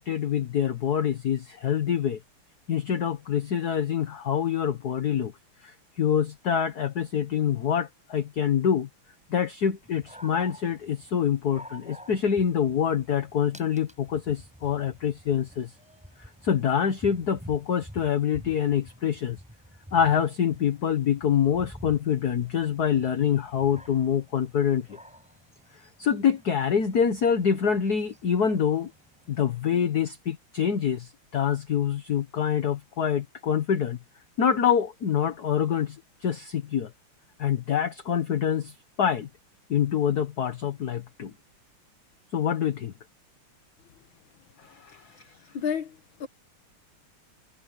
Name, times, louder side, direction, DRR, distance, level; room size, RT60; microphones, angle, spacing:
voice 1, 0.0-2.2 2.7-5.3 5.6-8.9 9.3-15.7 16.2-19.4 19.9-25.0 26.0-28.9 29.3-34.0 34.4-36.9 37.4-39.3 39.7-41.3 42.3-42.9 44.6-45.3, left 8 dB, 50° left, 1.7 m, -26 dB
Dog, 9.8-29.4, equal, 5° right, 7.4 m, -49 dB
voice 2, 45.5-46.3, left 7 dB, 65° left, 1.8 m, -31 dB
omnidirectional pair, 2.4 m